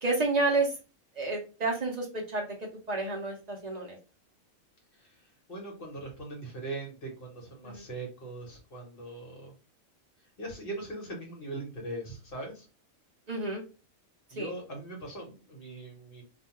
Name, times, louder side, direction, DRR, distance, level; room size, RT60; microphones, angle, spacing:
voice 1, 0.0-0.7 1.1-4.0 7.6-7.8 13.3-13.6 14.4-14.5, right 3 dB, 50° right, -1 dB, 0.5 m, -30 dB
voice 2, 5.0-9.5 10.4-12.7 14.3-16.2, right 2 dB, 45° left, 0 dB, 1.1 m, -40 dB
2.5 x 2.3 x 2.8 m, 0.32 s
omnidirectional pair, 1.4 m